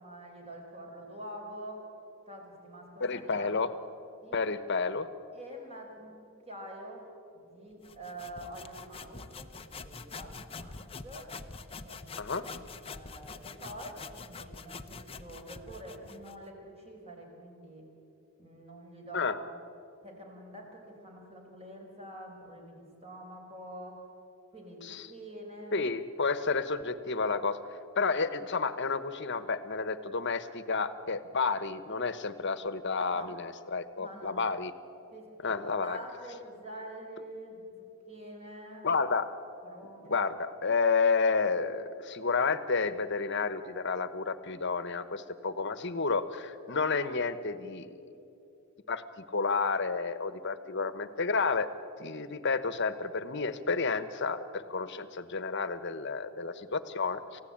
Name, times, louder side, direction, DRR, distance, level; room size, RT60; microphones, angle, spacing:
voice 1, 0.0-1.8 2.3-3.8 4.2-4.5 5.3-6.2 6.5-7.1 7.3-11.3 11.8-17.8 18.4-19.6 20.0-24.0 24.5-25.8 33.1-33.3 34.0-34.4 35.1-35.5 35.8-37.7 38.1-38.9 39.6-40.3, right 1 dB, 30° right, 0 dB, 5.0 m, -46 dB
voice 2, 3.0-3.7 4.3-5.1 12.2-12.4 19.1-19.4 24.8-25.1 25.7-27.6 28.0-34.7 35.4-36.0 38.8-39.4 40.1-47.9 48.9-49.0 49.3-51.7 52.0-57.4, left 4 dB, 55° left, 13 dB, 1.1 m, -30 dB
sound 1, 7.8-16.4, left 4 dB, 25° left, 0.8 m, -45 dB
29.0 x 15.5 x 8.8 m, 2.8 s
head